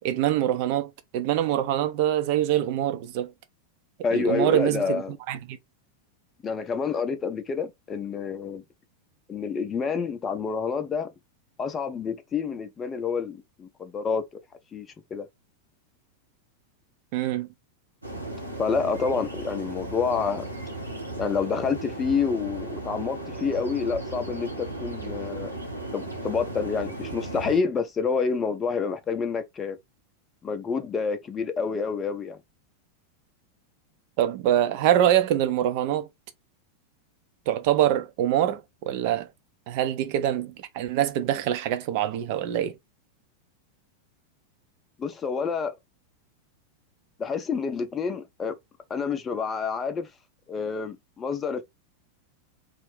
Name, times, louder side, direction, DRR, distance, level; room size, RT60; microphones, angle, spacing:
voice 1, 0.0-3.3 4.1-5.0 5.3-5.6 17.1-17.5 34.2-36.1 37.5-39.3 39.7-42.7, right 11 dB, 45° right, 0.4 m, -24 dB
voice 2, 4.0-5.1 6.4-8.6 9.3-11.1 11.6-14.2 14.7-15.3 18.6-20.4 21.2-25.5 25.9-29.8 30.4-32.4 45.0-45.7 47.2-48.5 48.9-50.1 50.5-51.6, left 5 dB, 20° left, 0.5 m, -28 dB
sound 1, 18.0-27.6, right 2 dB, 85° right, 0.7 m, -36 dB
2.4 x 2.0 x 3.3 m
figure-of-eight pair, 90°, 0 cm